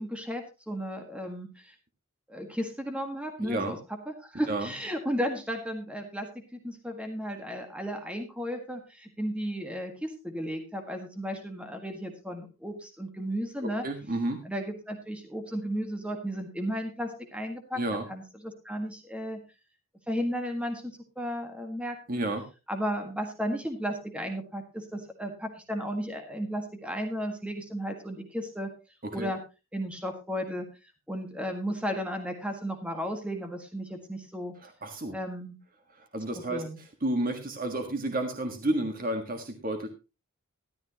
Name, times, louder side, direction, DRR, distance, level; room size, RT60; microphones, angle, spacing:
voice 1, 0.0-1.7 2.3-3.8 4.1-13.8 14.4-17.8 18.1-19.4 20.1-22.3 22.7-28.7 29.1-29.4 29.7-30.7 31.1-34.5 35.1-35.6 36.5-36.8, equal, 5° right, 5 dB, 1.6 m, -34 dB
voice 2, 3.4-3.8 4.5-4.7 13.6-14.4 17.7-18.1 22.1-22.4 29.0-29.3 34.6-35.1 35.9-39.9, right 1 dB, 40° right, 5 dB, 1.6 m, -31 dB
13.5 x 12.0 x 2.9 m, 0.29 s
head